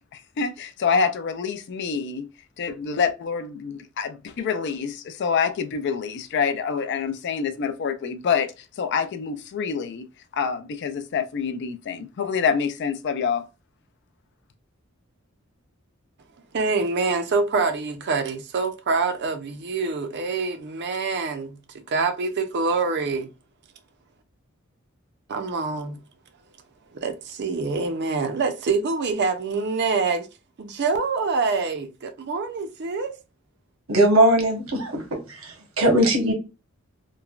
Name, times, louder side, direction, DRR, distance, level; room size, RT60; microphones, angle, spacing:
voice 1, 0.1-2.3 2.6-13.4, left 6 dB, 55° left, 0.4 m, -26 dB
voice 2, 16.5-23.3 25.3-26.0 26.9-30.3 30.6-33.2, right 4 dB, 55° right, 0.5 m, -25 dB
voice 3, 33.9-35.0 35.3-36.3, right 1 dB, 75° right, 1.0 m, -19 dB
3.1 x 2.1 x 2.3 m
head